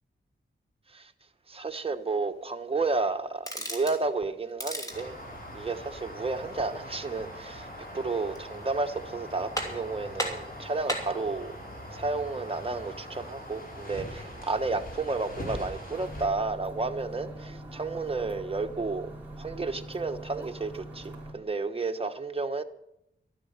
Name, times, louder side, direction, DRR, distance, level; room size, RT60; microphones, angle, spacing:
voice 1, 1.5-5.2 5.5-7.7 7.9-11.5 11.9-19.1 19.4-22.6, right 3 dB, 30° right, 6 dB, 1.2 m, -32 dB
sound 1, 3.4-4.0 4.5-5.1 8.1-8.6 9.0-9.1 9.6-9.9 10.2-11.2, equal, 15° left, 3.0 m, -34 dB
sound 2, 4.9-16.3, equal, 45° left, 5.0 m, -42 dB
sound 3, 15.9-21.3, right 1 dB, 10° right, 4.4 m, -43 dB
13.0 x 12.5 x 6.7 m, 0.80 s
wide cardioid pair, 115°, 20 cm